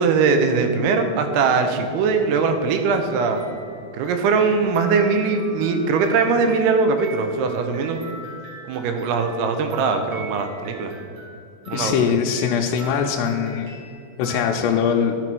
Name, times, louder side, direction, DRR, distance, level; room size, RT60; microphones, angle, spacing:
voice 1, 0.0-3.4 3.9-8.0 8.7-10.9 11.7-12.1, right 4 dB, 85° right, 6 dB, 2.6 m, -21 dB
sound 1, 2.8-14.5, equal, 40° right, 2.3 m, -41 dB
voice 2, 11.7-13.7 14.2-15.2, left 7 dB, 85° left, 1 dB, 2.7 m, -21 dB
12.0 x 6.0 x 4.6 m, 2.5 s
omnidirectional pair, 4.8 m